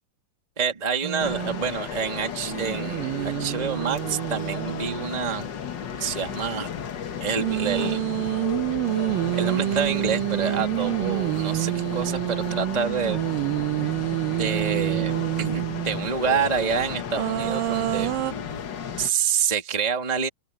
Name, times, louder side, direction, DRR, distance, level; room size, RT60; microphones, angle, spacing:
voice 1, 0.6-5.5 6.0-6.7 7.2-8.0 9.3-13.2 13.8-13.9 14.3-18.1 18.9-20.3, right 6 dB, 15° right, 2.2 m, -27 dB
sound 1, 1.0-1.7 2.5-5.2 7.4-16.1 17.1-18.3, right 22 dB, 85° right, 2.3 m, -27 dB
sound 2, 1.2-19.1, left 7 dB, 50° left, 1.3 m, -34 dB
omnidirectional pair, 3.9 m